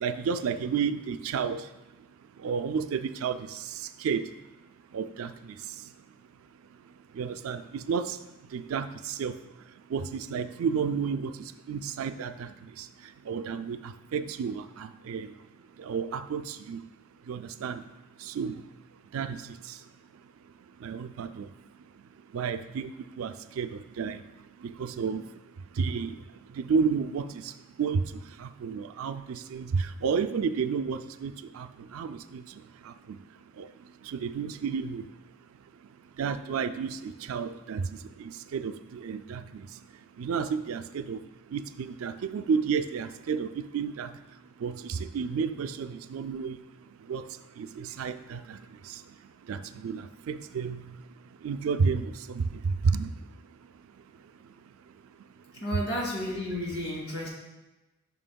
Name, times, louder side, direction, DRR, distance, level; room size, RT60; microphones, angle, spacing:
voice 1, 0.0-1.6 2.4-3.6 4.0-4.2 4.9-5.3 7.2-8.2 8.5-9.4 9.9-11.3 11.7-12.5 12.8-12.9 13.3-15.3 15.8-16.8 17.3-17.8 18.2-18.6 19.1-19.4 20.8-21.5 22.3-22.9 23.2-24.2 24.6-25.2 25.8-26.1 26.6-27.4 27.8-28.1 28.4-32.4 32.9-33.0 33.6-33.7 34.1-35.0 36.2-37.8 38.5-39.7 40.2-41.2 41.5-44.1 44.6-46.6 47.1-47.3 47.6-48.6 49.5-50.8 51.4-52.4 52.8-53.1, right 6 dB, 80° right, 11 dB, 0.4 m, -31 dB
voice 2, 55.6-57.3, left 1 dB, 60° left, -4 dB, 2.6 m, -32 dB
11.0 x 5.9 x 2.3 m, 1.0 s
head